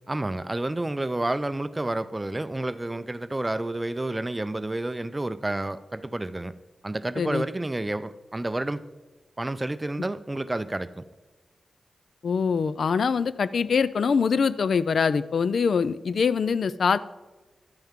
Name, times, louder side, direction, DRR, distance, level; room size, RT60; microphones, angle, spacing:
voice 1, 0.1-6.5 6.8-8.8 9.4-11.0, right 2 dB, 20° right, 14 dB, 0.4 m, -30 dB
voice 2, 12.2-17.0, left 5 dB, 70° left, 16 dB, 0.3 m, -24 dB
11.5 x 9.2 x 3.6 m, 1.2 s
cardioid pair, 80°, 0 cm